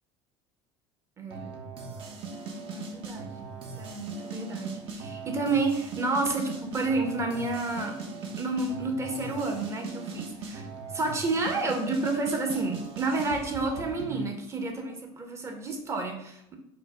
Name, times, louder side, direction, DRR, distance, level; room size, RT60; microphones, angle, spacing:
voice 1, 1.2-1.5 2.7-3.5 3.8-8.0 8.4-16.6, right 3 dB, 25° right, 3 dB, 0.9 m, -30 dB
sound 1, 1.3-14.2, right 4 dB, 50° right, 0.9 m, -39 dB
4.9 x 2.1 x 4.8 m, 0.82 s
cardioid pair, 135°, 12 cm